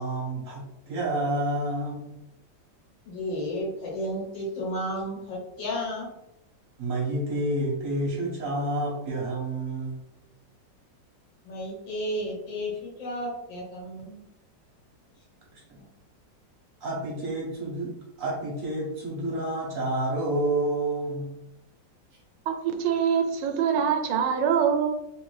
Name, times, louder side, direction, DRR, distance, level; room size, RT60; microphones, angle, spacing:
voice 1, 0.0-2.1 6.8-10.0 15.7-15.8 16.8-17.9 18.2-21.3, right 1 dB, 55° right, -3 dB, 1.2 m, -29 dB
voice 2, 3.0-6.1 11.4-14.2 15.8-15.9, equal, 85° left, -3 dB, 1.8 m, -33 dB
voice 3, 22.5-25.0, right 7 dB, 85° right, 5 dB, 1.3 m, -24 dB
3.4 x 2.5 x 3.1 m, 0.89 s
omnidirectional pair, 2.0 m